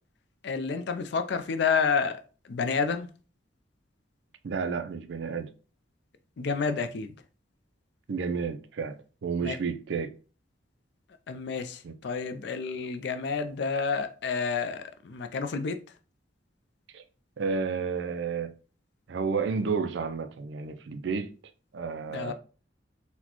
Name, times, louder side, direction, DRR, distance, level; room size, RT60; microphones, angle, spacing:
voice 1, 0.4-2.2 2.5-3.1 6.4-7.1 9.4-9.6 11.3-15.8 22.1-22.3, left 5 dB, 60° left, 0.4 m, -29 dB
voice 2, 4.4-5.5 8.1-9.0 9.2-10.1 11.8-11.9 16.9-17.0 17.4-18.5 19.1-21.3 21.7-22.3, right 5 dB, 60° right, 0.4 m, -31 dB
4.1 x 2.2 x 2.9 m
head